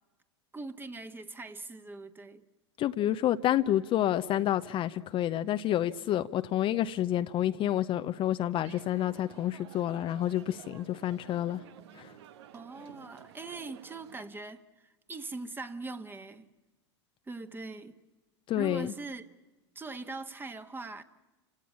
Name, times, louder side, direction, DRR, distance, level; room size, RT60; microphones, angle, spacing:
voice 1, 0.5-2.4 12.5-16.5 17.3-18.0 18.6-19.3 19.7-21.0, right 3 dB, 15° right, 1.5 m, -41 dB
voice 2, 2.8-11.6 11.9-12.2 18.5-18.9, left 12 dB, 35° left, 0.8 m, -29 dB
sound 1, 8.6-14.2, right 10 dB, 65° right, 1.3 m, -52 dB
29.0 x 17.5 x 8.6 m
hypercardioid pair, 100°, 15 cm